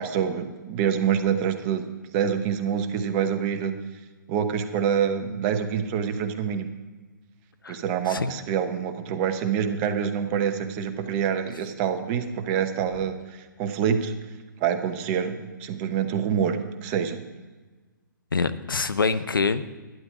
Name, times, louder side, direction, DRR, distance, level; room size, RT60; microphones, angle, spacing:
voice 1, 0.0-1.8 2.1-3.7 4.3-6.7 7.7-14.1 14.6-17.2, right 8 dB, 30° right, 7 dB, 1.0 m, -26 dB
voice 2, 18.3-19.8, left 4 dB, 80° left, 12 dB, 0.7 m, -25 dB
12.0 x 9.9 x 4.8 m, 1.3 s
figure-of-eight pair, 130°, 11 cm